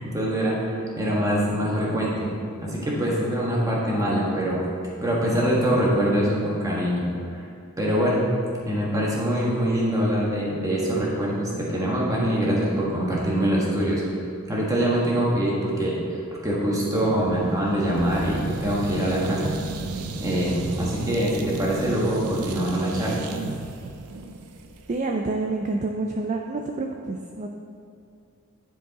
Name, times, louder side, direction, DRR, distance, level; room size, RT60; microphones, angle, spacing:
voice 1, 0.0-2.3 2.6-4.7 5.0-7.5 7.8-8.2 8.6-14.0 14.5-19.5 20.2-23.2, equal, 15° right, -4 dB, 1.4 m, -24 dB
sound 1, 17.0-25.0, right 3 dB, 90° right, 0.6 m, -34 dB
voice 2, 24.9-27.5, right 3 dB, 35° right, 2 dB, 0.4 m, -28 dB
10.0 x 4.6 x 4.0 m, 2.5 s
head